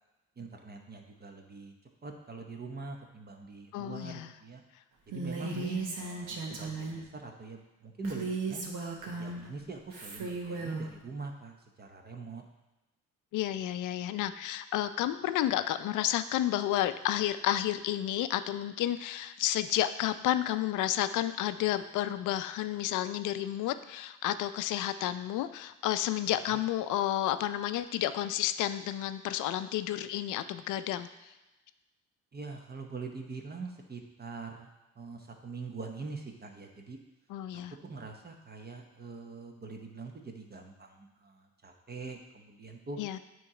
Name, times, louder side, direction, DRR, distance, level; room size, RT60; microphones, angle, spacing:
voice 1, 0.4-1.7 2.0-4.6 5.1-8.7 9.0-12.4 32.3-34.7 35.0-37.0 37.5-43.0, right 3 dB, 30° right, 3 dB, 0.9 m, -43 dB
voice 2, 3.7-4.3 5.4-5.9 13.3-31.3 37.3-37.7 43.0-43.2, left 12 dB, 85° left, 12 dB, 0.5 m, -31 dB
Female speech woman speaking, 5.1-7.0 8.0-9.4 9.9-10.9, right 4 dB, 90° right, 1.1 m, -36 dB
8.4 x 3.1 x 4.8 m, 1.1 s
cardioid pair, 90°, 30 cm